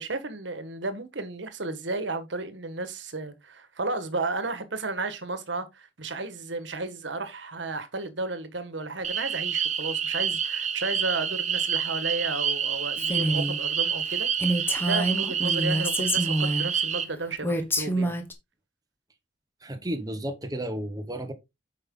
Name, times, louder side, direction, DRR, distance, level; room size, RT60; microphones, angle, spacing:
voice 1, 0.0-18.1, right 3 dB, 80° right, 1.5 m, -33 dB
sound 1, 9.0-17.1, right 7 dB, 40° right, 1.0 m, -28 dB
Female speech woman speaking, 13.0-13.6 14.0-14.1 14.4-16.7 17.4-18.3, right 1 dB, 10° left, 1.3 m, -27 dB
voice 2, 19.6-21.3, right 1 dB, 20° right, 1.2 m, -33 dB
8.9 x 5.5 x 3.8 m
head